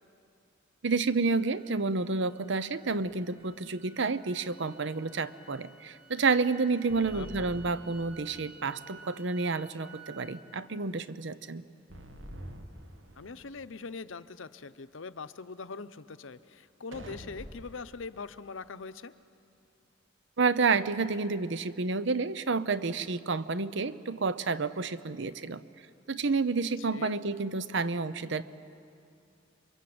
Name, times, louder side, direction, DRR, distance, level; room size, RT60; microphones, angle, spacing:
voice 1, 0.8-11.6 20.4-25.6 26.1-28.4, right 4 dB, 65° right, 14 dB, 0.8 m, -30 dB
sound 1, 1.2-10.4, right 5 dB, 10° right, 1.9 m, -55 dB
sound 2, 2.8-3.6 6.9-8.6 11.9-13.6 16.9-17.8, equal, 90° right, 2.3 m, -47 dB
voice 2, 13.2-19.1 26.8-27.1, left 4 dB, 75° left, 13 dB, 0.8 m, -42 dB
28.5 x 23.5 x 7.9 m, 2.6 s
head